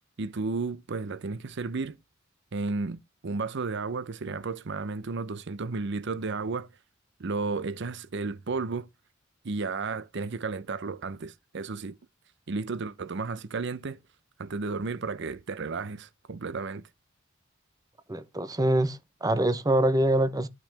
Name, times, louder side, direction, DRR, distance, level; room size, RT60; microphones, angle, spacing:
voice 1, 0.2-2.0 2.5-6.7 7.2-8.9 9.4-12.0 12.5-14.0 14.4-16.8, right 4 dB, 60° right, 0.6 m, -33 dB
voice 2, 18.1-20.5, right 1 dB, 20° right, 0.7 m, -24 dB
12.5 x 6.0 x 3.3 m
head